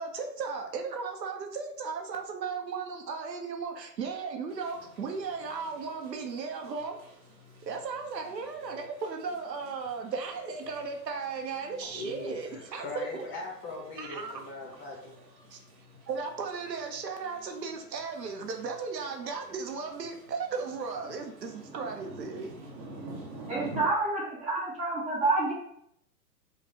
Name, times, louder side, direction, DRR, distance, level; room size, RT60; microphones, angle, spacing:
voice 1, 0.0-7.1 7.6-13.3 14.0-14.3 15.5-15.6 16.1-22.5, right 5 dB, 85° right, 4 dB, 0.8 m, -36 dB
sound 1, 4.5-23.9, right 2 dB, 40° right, 0.9 m, -49 dB
voice 2, 11.8-15.2, left 2 dB, 25° left, -2 dB, 1.1 m, -40 dB
voice 3, 23.5-25.5, right 3 dB, 15° right, -5 dB, 1.1 m, -28 dB
4.4 x 2.3 x 2.7 m, 0.71 s
hypercardioid pair, 120°, 49 cm